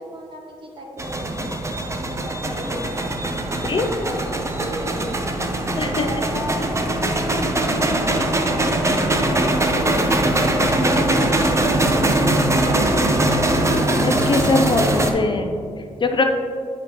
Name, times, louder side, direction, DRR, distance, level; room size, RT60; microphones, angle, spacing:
voice 1, 0.0-1.7 2.1-5.2 5.7-7.0 7.6-10.2 10.8-12.1 12.4-13.3, equal, 40° right, -1 dB, 1.5 m, -36 dB
sound 1, 1.0-15.1, right 1 dB, 20° right, 0.7 m, -21 dB
voice 2, 14.0-15.5 16.0-16.2, left 3 dB, 40° left, 4 dB, 0.6 m, -21 dB
8.1 x 5.0 x 3.0 m, 2.3 s
cardioid pair, 70°, 13 cm